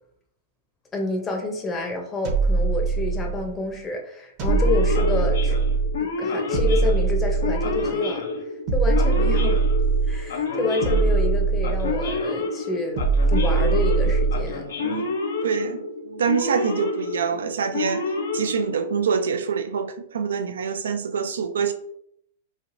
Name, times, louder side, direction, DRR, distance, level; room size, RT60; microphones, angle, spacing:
voice 1, 0.9-5.6 6.0-8.2 8.7-9.6 10.1-13.0 13.3-14.7, left 2 dB, 20° left, 0.7 m, -29 dB
sound 1, 2.2-3.6 4.4-6.0 6.5-7.9 8.7-10.3 10.8-12.2 13.0-14.6, right 4 dB, 45° right, 0.7 m, -22 dB
Male speech man speaking / Siren, 4.5-19.2, left 3 dB, 75° left, 0.5 m, -29 dB
voice 2, 14.8-15.2 15.4-18.1 18.3-21.7, right 6 dB, 85° right, 0.3 m, -26 dB
3.1 x 2.5 x 2.5 m
hypercardioid pair, 125°, 0 cm